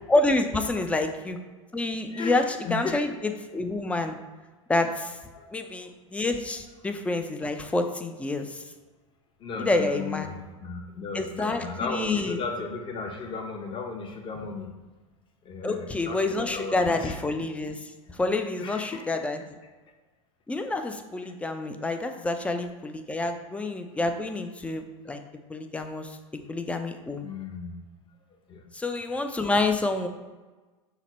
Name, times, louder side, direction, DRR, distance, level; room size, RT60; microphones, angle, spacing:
voice 1, 0.1-1.4 1.7-4.2 4.7-5.2 5.5-8.6 9.6-10.3 11.1-12.4 15.6-19.4 20.5-25.2 25.5-27.3 28.7-30.1, left 2 dB, 5° left, 7 dB, 0.4 m, -28 dB
voice 2, 2.1-3.0 5.3-5.9 9.4-14.7 15.4-17.1 18.6-19.1 22.1-22.2 27.2-27.8 28.5-28.7, left 4 dB, 30° left, 4 dB, 0.8 m, -35 dB
5.8 x 2.1 x 4.1 m, 1.3 s
hypercardioid pair, 100°, 17 cm